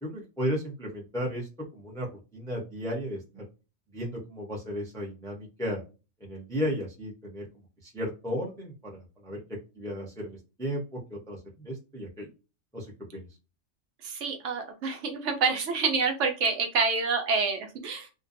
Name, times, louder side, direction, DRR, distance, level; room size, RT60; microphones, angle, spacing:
voice 1, 0.0-1.5 1.7-3.4 3.9-5.8 6.2-7.5 7.8-9.4 9.8-12.3 12.7-12.9 13.1-13.2, equal, 5° left, -2 dB, 0.4 m, -34 dB
voice 2, 14.0-18.1, right 4 dB, 70° right, 4 dB, 0.9 m, -27 dB
2.5 x 2.2 x 2.4 m, 0.31 s
omnidirectional pair, 1.4 m